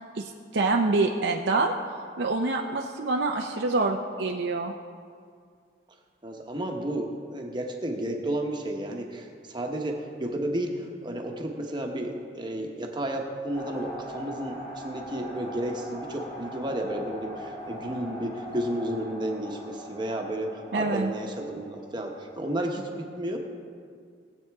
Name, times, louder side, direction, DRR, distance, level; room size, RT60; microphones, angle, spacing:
voice 1, 0.1-1.7 2.2-4.7 20.7-21.1, right 3 dB, 75° right, 2 dB, 0.6 m, -26 dB
voice 2, 6.2-22.9 23.2-23.4, right 1 dB, 25° right, 1 dB, 1.1 m, -32 dB
sound 1, 13.5-22.6, equal, 55° left, 3.0 m, -41 dB
19.0 x 7.9 x 3.5 m, 2.1 s
head